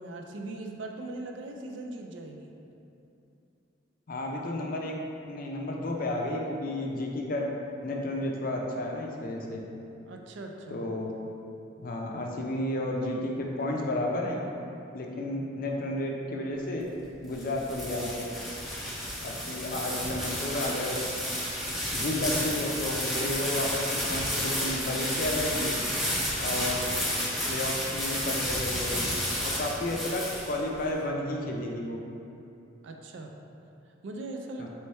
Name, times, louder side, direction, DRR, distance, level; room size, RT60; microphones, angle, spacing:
voice 1, 0.0-2.5 10.1-10.8 32.8-33.4 34.0-34.7, right 2 dB, 70° right, 3 dB, 0.4 m, -40 dB
voice 2, 4.1-4.9 5.3-7.5 7.8-9.6 10.7-11.2 11.8-14.4 14.9-16.9 17.2-18.3 19.2-21.0 21.9-25.7 26.4-26.8 27.5-29.1 29.4-32.0 34.6-34.7, left 1 dB, 45° left, 0 dB, 0.4 m, -32 dB
sound 1, 17.0-30.8, equal, ahead, 0.6 m, -31 dB
3.4 x 3.1 x 4.2 m, 2.8 s
head